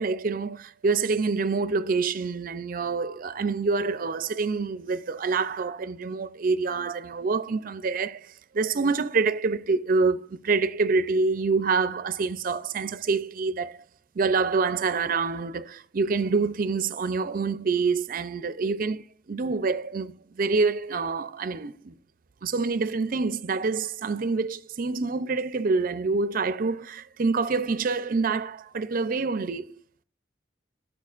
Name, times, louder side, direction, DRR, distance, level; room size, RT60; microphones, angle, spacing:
voice 1, 0.0-13.8 14.2-21.9 22.4-29.7, right 4 dB, 50° right, 0.5 m, -26 dB
13.0 x 6.9 x 2.4 m
head